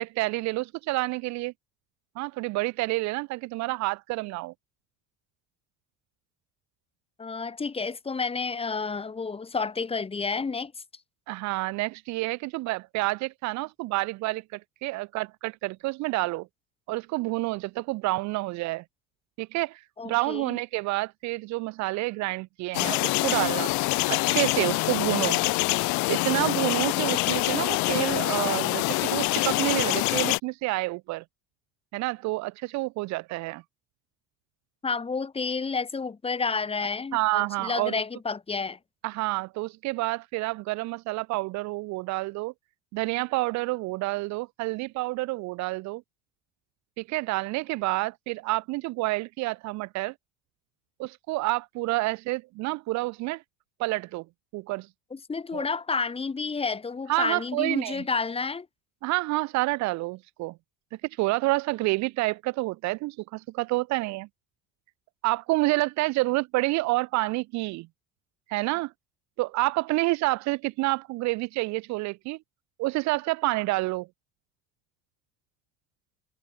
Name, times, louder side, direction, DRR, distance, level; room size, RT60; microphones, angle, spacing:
voice 1, 0.0-1.5 2.2-4.5 11.3-16.5 16.9-18.8 19.4-23.7 24.1-25.4 26.1-31.2 31.9-33.6 37.1-38.0 39.0-42.5 42.9-46.0 47.0-50.1 51.0-53.4 53.8-54.2 54.5-54.9 55.5-55.6 57.1-58.0 59.0-60.6 61.2-64.3 65.2-67.9 68.5-68.9 69.4-72.4 72.8-74.1, right 21 dB, 60° right, 0.5 m, -28 dB
voice 2, 7.2-10.7 20.0-20.6 34.8-38.8 55.1-58.7, left 4 dB, 20° left, 2.5 m, -30 dB
sound 1, 22.7-30.4, left 23 dB, 60° left, 0.5 m, -25 dB
cardioid pair, 135°, 32 cm